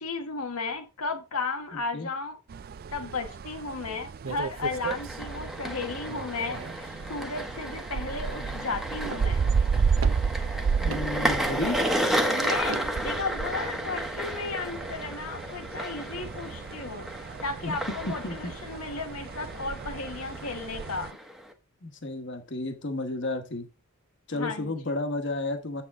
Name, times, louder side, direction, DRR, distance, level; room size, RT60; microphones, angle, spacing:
voice 1, 0.0-2.4 2.9-9.4 12.3-21.2 24.3-24.8, left 3 dB, 85° left, 1.2 m, -34 dB
voice 2, 1.7-2.1 10.8-11.8 17.6-17.7 18.2-18.5 21.8-23.7 24.3-25.8, left 2 dB, 55° left, 1.3 m, -32 dB
sound 1, 2.5-21.1, right 5 dB, 45° right, 0.3 m, -33 dB
sound 2, 4.2-5.2 6.1-6.9 9.0-9.4 9.9-10.3 10.8-11.1 11.7-12.0 12.7-12.9, right 4 dB, 65° right, 0.8 m, -37 dB
sound 3, 4.6-21.5, equal, ahead, 0.9 m, -33 dB
8.2 x 7.2 x 3.6 m
head